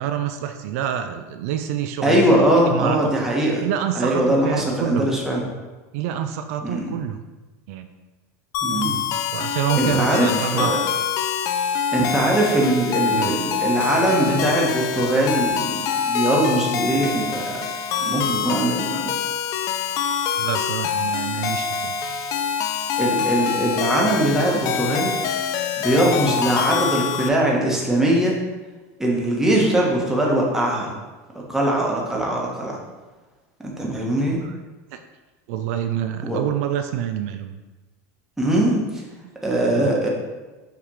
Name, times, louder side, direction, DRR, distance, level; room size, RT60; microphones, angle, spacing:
voice 1, 0.0-3.3 3.6-5.2 5.9-7.2 7.7-7.9 9.3-10.7 13.1-13.4 20.3-22.0 34.4-34.5 34.9-35.0 35.5-37.6 39.2-39.3 39.7-39.9, right 10 dB, 70° right, 8 dB, 0.4 m, -27 dB
voice 2, 2.0-3.6 3.9-5.5 6.6-6.9 8.6-9.0 9.4-10.8 11.9-17.5 18.0-19.2 23.0-25.1 25.8-28.3 29.0-30.9 31.3-32.8 33.6-34.4 36.2-36.4 38.4-39.0 39.4-40.1, right 1 dB, 5° right, -3 dB, 1.2 m, -21 dB
sound 1, 8.5-27.3, left 7 dB, 45° left, 0.5 m, -25 dB
5.8 x 3.3 x 5.5 m, 1.2 s
supercardioid pair, 140°, 8 cm